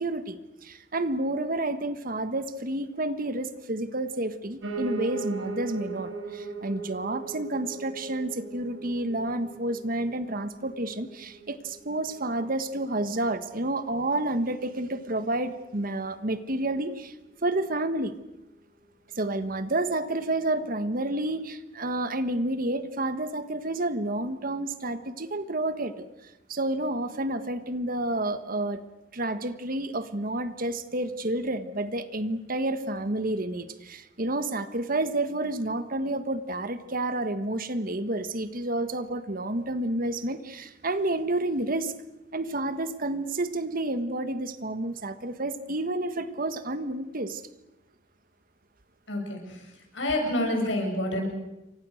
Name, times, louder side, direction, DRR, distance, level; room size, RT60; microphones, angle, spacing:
voice 1, 0.0-17.1 17.4-18.1 19.1-26.1 26.5-28.8 29.1-41.9 42.3-47.4, right 2 dB, 50° right, 11 dB, 1.6 m, -30 dB
Piano, 4.6-13.7 14.1-15.3 15.6-15.7 15.9-16.0 16.2-16.3 16.9-17.0, right 4 dB, 80° right, 5.1 m, -39 dB
voice 2, 49.1-49.6 49.9-51.3, left 1 dB, 80° left, 2 dB, 7.5 m, -28 dB
28.5 x 24.0 x 6.6 m, 1.0 s
head